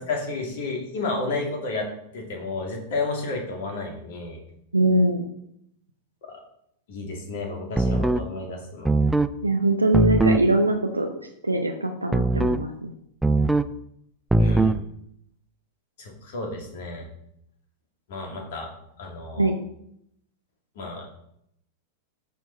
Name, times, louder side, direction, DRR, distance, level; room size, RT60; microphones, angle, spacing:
voice 1, 0.0-1.9 2.1-4.4 6.2-6.4 6.9-8.9 14.4-14.7 16.0-17.1 18.1-18.7 19.0-19.5 20.8-21.1, left 3 dB, 55° left, 1 dB, 2.4 m, -31 dB
voice 2, 4.7-5.3 9.4-11.1 11.4-12.9 19.4-19.6, right 2 dB, 85° right, 5 dB, 0.7 m, -22 dB
sound 1, 7.8-8.3 8.8-9.3 9.9-10.5 12.1-12.7 13.2-13.7 14.3-14.8, right 2 dB, 5° right, 0.4 m, -20 dB
13.5 x 4.6 x 4.2 m, 0.74 s
figure-of-eight pair, 90°, 0 cm